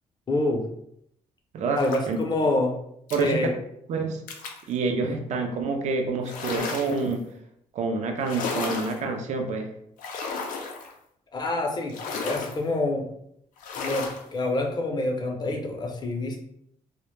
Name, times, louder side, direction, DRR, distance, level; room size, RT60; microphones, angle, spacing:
voice 1, 0.3-0.6 1.8-2.7 3.2-3.5 5.0-5.2 11.3-13.1 13.8-16.4, left 2 dB, 30° left, 2 dB, 0.5 m, -27 dB
voice 2, 1.5-2.2 3.1-3.6 3.9-4.2 4.7-7.2 7.7-9.7, right 4 dB, 60° right, 4 dB, 0.4 m, -27 dB
sound 1, 1.8-2.2 3.1-3.3 4.3-4.7 6.2-7.1 8.2-9.0 10.0-10.9 11.9-12.6 13.6-14.2, left 4 dB, 90° left, 0.4 m, -33 dB
2.1 x 2.0 x 3.0 m, 0.73 s
cardioid pair, 105°, 13 cm